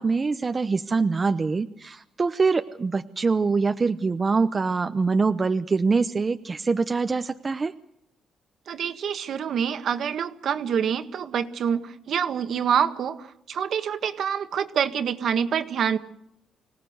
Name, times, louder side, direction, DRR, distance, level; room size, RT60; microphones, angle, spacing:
voice 1, 0.0-7.7, right 4 dB, 30° right, 8 dB, 0.9 m, -24 dB
voice 2, 8.7-16.0, right 8 dB, 65° right, 8 dB, 1.6 m, -26 dB
25.5 x 17.5 x 8.0 m, 0.77 s
cardioid pair, 90°, 0 cm